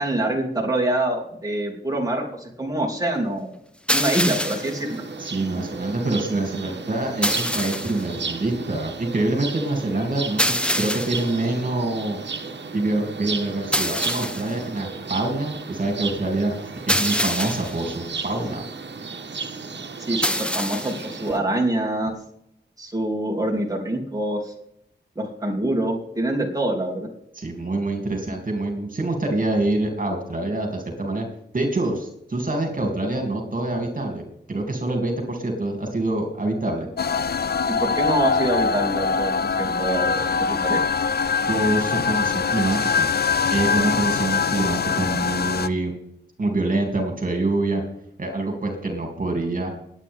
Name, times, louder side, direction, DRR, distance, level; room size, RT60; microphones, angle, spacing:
voice 1, 0.0-3.5 3.9-5.0 20.0-22.1 22.8-24.5 25.1-27.1 37.7-40.8, right 1 dB, 20° right, -1 dB, 3.0 m, -25 dB
sound 1, 3.9-4.8 7.2-8.1 10.4-11.3 13.7-14.6 16.9-17.8 20.2-21.1, equal, 5° left, 1.2 m, -25 dB
sound 2, 4.2-21.4, right 4 dB, 70° right, 1.5 m, -34 dB
voice 2, 5.2-12.2 12.7-18.6 27.3-31.3 31.5-36.9 41.5-43.1 43.5-45.9 46.4-47.8 48.2-49.7, right 2 dB, 45° right, 2 dB, 3.0 m, -25 dB
sound 3, 37.0-45.7, left 5 dB, 60° left, 0.6 m, -23 dB
20.5 x 8.9 x 3.7 m, 0.74 s
wide cardioid pair, 75°, 19 cm